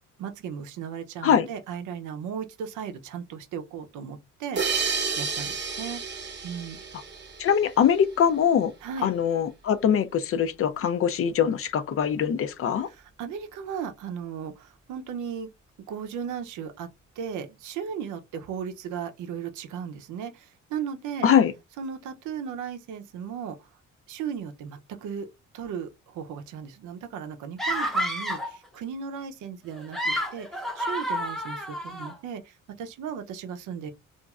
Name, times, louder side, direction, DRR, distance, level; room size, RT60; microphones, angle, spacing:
voice 1, 0.2-6.0 6.4-6.8 8.8-9.1 12.8-15.5 15.9-16.9 17.2-21.3 21.8-23.7 24.1-25.3 25.5-33.9, right 7 dB, 80° right, 0.6 m, -36 dB
sound 1, 4.6-7.9, right 5 dB, 35° right, 0.8 m, -31 dB
voice 2, 7.4-8.7 9.0-12.9 21.2-21.5, left 8 dB, 50° left, 0.5 m, -22 dB
sound 2, 27.6-28.6 29.7-32.1, equal, ahead, 0.6 m, -29 dB
3.0 x 2.5 x 2.3 m
cardioid pair, 90°, 30 cm